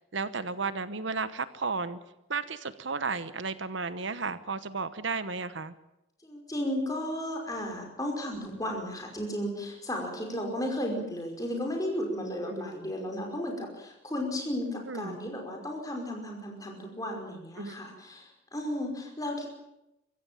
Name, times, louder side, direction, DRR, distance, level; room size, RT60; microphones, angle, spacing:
voice 1, 0.0-2.0 2.3-5.7 12.5-12.7 14.9-15.2 17.6-17.8, right 4 dB, 70° right, 14 dB, 1.0 m, -33 dB
voice 2, 6.2-19.5, left 1 dB, 20° left, 2 dB, 5.3 m, -34 dB
24.5 x 15.0 x 9.0 m, 0.87 s
head